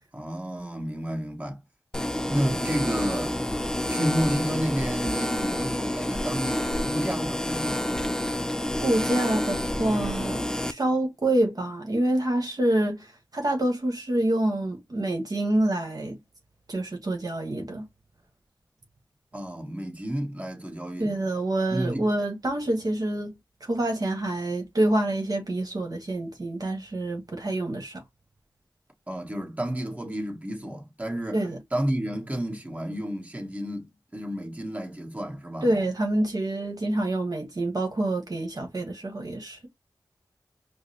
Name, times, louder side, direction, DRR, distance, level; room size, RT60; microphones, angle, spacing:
voice 1, 0.1-1.6 2.3-3.4 3.9-7.8 19.3-21.1 21.7-22.1 29.1-31.4 31.7-35.7, equal, 20° right, 1.5 m, -31 dB
sound 1, 1.9-10.7, left 1 dB, 10° left, 0.4 m, -28 dB
voice 2, 8.8-16.2 16.7-17.8 21.0-23.3 23.6-28.0 31.3-31.6 35.6-39.7, right 1 dB, 60° right, 1.2 m, -27 dB
4.8 x 2.1 x 2.7 m
cardioid pair, 50°, 7 cm